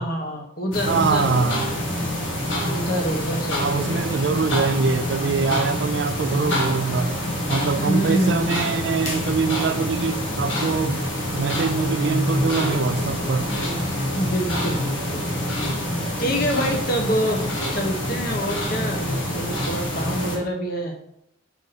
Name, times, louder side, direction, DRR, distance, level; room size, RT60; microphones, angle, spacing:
voice 1, 0.0-1.5 2.7-4.1 7.8-8.8 14.1-15.3 16.2-21.0, equal, 50° left, 1.1 m, -26 dB
sound 1, 0.7-20.4, equal, 75° left, 1.6 m, -26 dB
voice 2, 0.9-1.7 3.6-7.1 7.5-11.0 11.3-13.5, right 5 dB, 60° right, 0.4 m, -24 dB
5.5 x 4.8 x 4.1 m
head